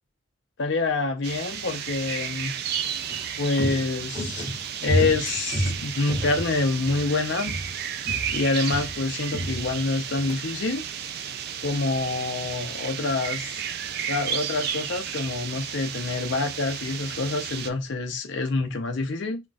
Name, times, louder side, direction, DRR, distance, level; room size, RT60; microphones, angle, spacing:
voice 1, 0.6-2.6 3.4-4.5 4.8-7.6 8.3-10.8 11.6-13.6 14.1-19.4, left 3 dB, 65° left, 0.6 m, -27 dB
sound 1, 1.2-17.7, right 8 dB, 55° right, 0.3 m, -33 dB
Walk footsteps, 2.8-7.1 7.4-7.8 8.1-10.4 10.7-10.8, equal, 20° right, 1.1 m, -31 dB
2.3 x 2.2 x 3.9 m
head